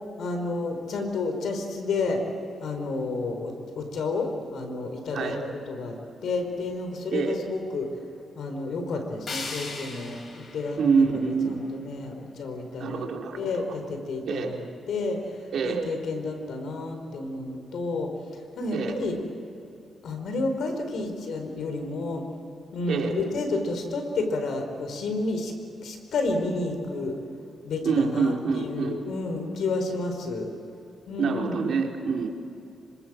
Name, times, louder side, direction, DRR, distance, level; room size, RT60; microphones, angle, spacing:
voice 1, 0.2-2.2 2.6-5.3 5.7-6.0 6.2-7.9 8.3-11.0 11.4-13.1 13.3-18.1 18.5-19.2 20.0-22.2 22.7-25.5 25.8-27.2 27.6-30.5 31.1-31.8, left 3 dB, 80° left, 5 dB, 4.7 m, -30 dB
sound 1, 9.3-12.2, left 3 dB, 50° left, 4.3 m, -39 dB
voice 2, 10.8-11.7 12.8-13.6 14.3-14.5 15.5-15.8 18.7-18.9 22.9-23.1 27.8-29.0 31.2-32.3, right 5 dB, 75° right, 1 dB, 3.4 m, -26 dB
27.0 x 26.0 x 7.7 m, 2.7 s
cardioid pair, 110°, 0 cm